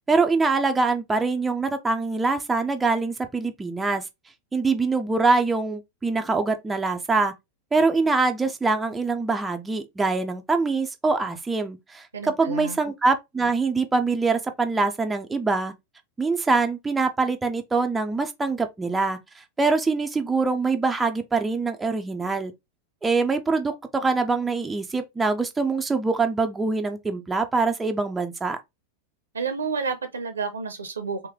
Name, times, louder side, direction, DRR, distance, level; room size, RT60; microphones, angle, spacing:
voice 1, 0.0-4.0 4.5-7.3 7.7-15.7 16.2-22.5 23.0-28.6, right 3 dB, 10° right, 0.5 m, -24 dB
voice 2, 12.1-12.8 29.3-31.3, right 5 dB, 70° right, 0.7 m, -30 dB
3.1 x 2.8 x 3.6 m
figure-of-eight pair, 90°, 0 cm